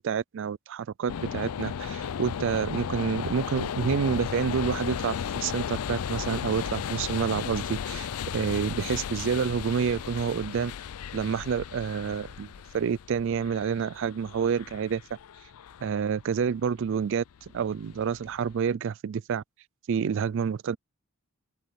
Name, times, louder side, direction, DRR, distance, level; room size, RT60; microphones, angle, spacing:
voice 1, 0.0-8.1 8.3-10.7 11.1-15.0 15.8-17.2 17.5-19.4 19.9-20.8, right 6 dB, 55° right, 0.3 m, -28 dB
sound 1, 1.1-18.7, left 7 dB, 85° left, 0.4 m, -35 dB
open air
head